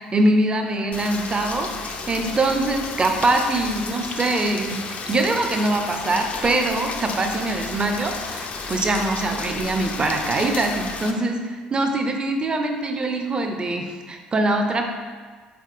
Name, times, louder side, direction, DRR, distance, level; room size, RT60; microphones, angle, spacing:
voice 1, 0.0-14.8, right 2 dB, 25° right, 4 dB, 0.4 m, -23 dB
Rain, 0.9-11.1, left 4 dB, 40° left, 0.4 m, -33 dB
3.9 x 3.6 x 2.5 m, 1.5 s
figure-of-eight pair, 55°, 4 cm